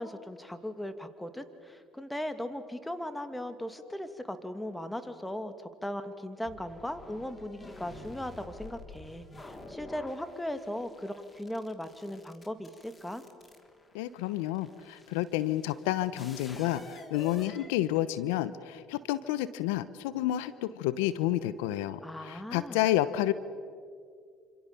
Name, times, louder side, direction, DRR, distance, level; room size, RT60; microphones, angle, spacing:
voice 1, 0.0-13.2 22.0-22.8, left 1 dB, 5° left, 9 dB, 2.6 m, -38 dB
sound 1, 6.4-18.4, left 2 dB, 25° left, 3.5 m, -50 dB
voice 2, 13.9-23.3, left 14 dB, 80° left, 15 dB, 0.9 m, -30 dB
28.5 x 26.5 x 7.1 m, 2.2 s
hypercardioid pair, 70°, 0 cm